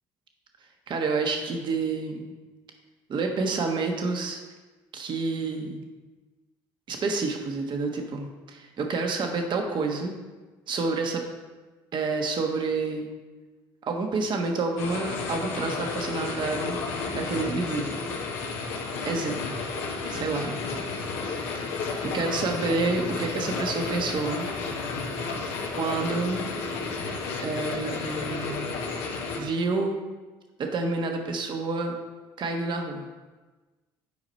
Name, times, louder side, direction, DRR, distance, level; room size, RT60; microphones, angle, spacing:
voice 1, 0.9-2.2 3.1-4.4 4.9-5.8 6.9-10.2 10.7-11.3 11.9-13.1 13.8-16.8 17.1-18.0 19.1-19.4 20.1-20.6 22.0-24.5 25.8-26.4 27.4-28.8 29.4-30.0 30.6-31.9 32.4-33.1, right 3 dB, 50° right, 3 dB, 1.3 m, -28 dB
sound 1, 14.8-29.4, left 4 dB, 85° left, 1.1 m, -32 dB
8.4 x 5.0 x 4.2 m, 1.2 s
supercardioid pair, 75°, 10 cm